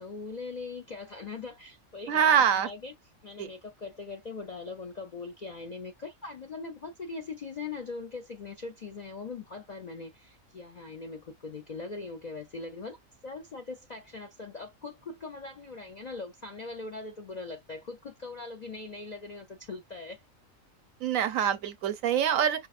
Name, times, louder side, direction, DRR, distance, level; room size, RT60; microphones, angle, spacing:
voice 1, 0.0-2.9 3.2-13.0 13.2-20.2, left 4 dB, 60° left, 0.4 m, -41 dB
voice 2, 2.1-2.7 3.4-3.5 21.0-22.7, right 8 dB, 80° right, 1.0 m, -25 dB
5.3 x 2.0 x 2.4 m
omnidirectional pair, 1.4 m